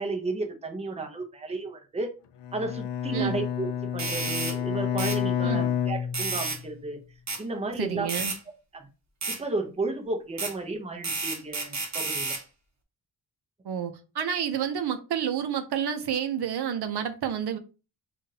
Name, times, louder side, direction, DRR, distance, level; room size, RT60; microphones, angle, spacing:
voice 1, 0.0-2.1 2.5-7.0 7.4-8.1 8.7-8.9 9.3-12.4, right 3 dB, 15° right, 0.7 m, -33 dB
Bowed string instrument, 2.4-6.8, left 9 dB, 75° left, 0.5 m, -30 dB
sound 1, 4.0-4.6 5.0-5.2 6.1-6.6 7.3-7.4 8.1-8.4 9.2-9.4 10.4-10.5 11.0-12.4, right 4 dB, 40° right, 1.1 m, -31 dB
voice 2, 7.8-8.3 13.6-17.6, right 8 dB, 65° right, 0.7 m, -29 dB
5.6 x 2.5 x 2.7 m
wide cardioid pair, 140°, 43 cm